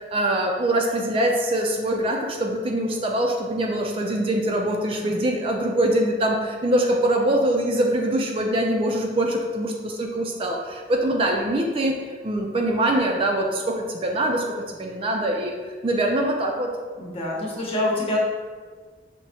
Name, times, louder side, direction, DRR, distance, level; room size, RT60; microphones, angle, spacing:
voice 1, 0.1-11.9 12.2-14.5 14.7-15.6 15.8-16.7, right 1 dB, 30° right, 1 dB, 0.3 m, -23 dB
voice 2, 17.0-18.2, left 1 dB, 35° left, -4 dB, 0.7 m, -26 dB
5.9 x 2.0 x 2.7 m, 1.5 s
head